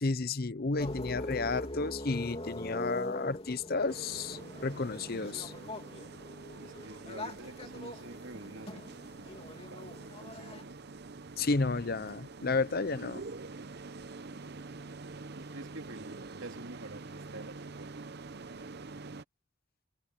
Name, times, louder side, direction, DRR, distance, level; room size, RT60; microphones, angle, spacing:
voice 1, 0.0-5.5 11.4-13.2, left 3 dB, 45° left, 0.7 m, -32 dB
sound 1, 0.8-10.6, left 1 dB, 30° left, 3.4 m, -42 dB
sound 2, 3.9-19.2, right 3 dB, 50° right, 0.7 m, -46 dB
voice 2, 6.6-8.8 9.1-9.4 9.7-10.8 15.3-18.0, right 2 dB, 65° right, 2.7 m, -48 dB
open air
head